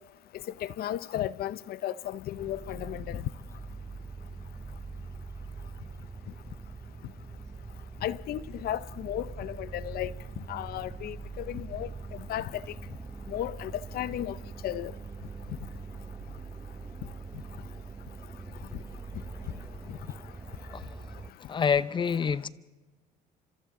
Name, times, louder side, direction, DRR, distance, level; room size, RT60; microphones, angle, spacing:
voice 1, 0.6-3.2 8.0-11.9 12.3-12.6 13.3-14.4 14.6-14.9 19.9-20.0, left 12 dB, 65° left, 0.6 m, -34 dB
sound 1, 2.4-21.3, right 4 dB, 15° right, 0.8 m, -43 dB
voice 2, 21.5-22.5, left 6 dB, 30° left, 0.6 m, -27 dB
29.0 x 26.0 x 3.8 m
cardioid pair, 110°, 17 cm